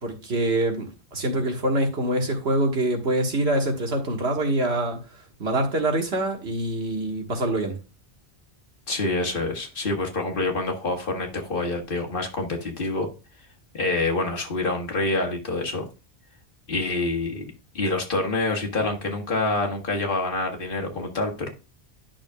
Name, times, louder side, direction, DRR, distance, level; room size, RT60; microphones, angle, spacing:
voice 1, 0.0-5.0 5.4-7.8, right 1 dB, 80° right, 1.8 m, -25 dB
voice 2, 8.9-13.1 13.7-15.8 16.7-17.4 17.7-21.5, left 2 dB, 55° left, 1.7 m, -26 dB
10.5 x 6.1 x 2.3 m
omnidirectional pair, 1.1 m